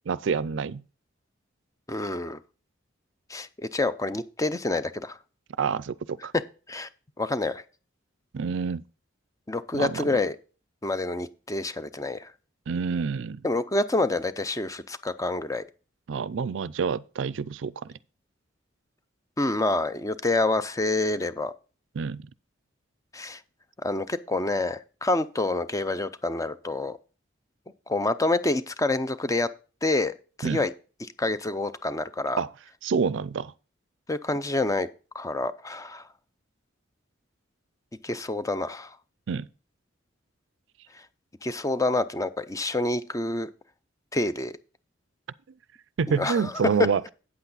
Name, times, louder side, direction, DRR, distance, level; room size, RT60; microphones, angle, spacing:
voice 1, 0.1-0.8 5.6-6.3 8.3-8.8 9.7-10.0 12.7-13.4 16.1-17.7 22.0-22.3 30.4-30.6 32.4-32.5 32.8-33.5 39.3-39.5 46.0-47.0, right 5 dB, 65° right, 0.4 m, -27 dB
voice 2, 1.9-2.4 3.3-5.2 6.7-6.9 7.2-7.6 9.5-10.4 10.8-12.3 13.4-15.6 19.4-21.5 23.1-23.4 23.8-27.0 27.9-29.5 29.8-30.1 30.4-30.7 31.2-32.4 34.1-34.9 35.1-36.1 38.0-39.0 41.4-43.5 44.1-44.5 46.1-46.5, left 2 dB, 15° left, 0.5 m, -27 dB
8.6 x 8.2 x 4.0 m
head